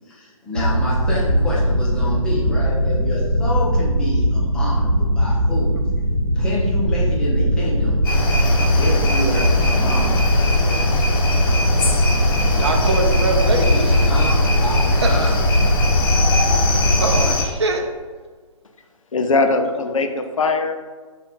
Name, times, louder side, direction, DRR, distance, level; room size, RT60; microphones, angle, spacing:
voice 1, 0.1-5.8 6.3-8.0 8.8-10.3 14.0-15.4, left 1 dB, 5° left, -8 dB, 0.8 m, -28 dB
sound 1, 0.5-17.2, equal, 90° right, 0.9 m, -19 dB
sound 2, 8.0-17.4, left 2 dB, 40° left, 0.8 m, -22 dB
voice 2, 12.6-14.0 15.0-15.3 16.6-17.8, right 3 dB, 50° right, 3 dB, 0.7 m, -23 dB
voice 3, 19.1-20.8, left 3 dB, 65° left, 7 dB, 0.5 m, -20 dB
5.4 x 2.5 x 3.7 m, 1.4 s
figure-of-eight pair, 135°, 18 cm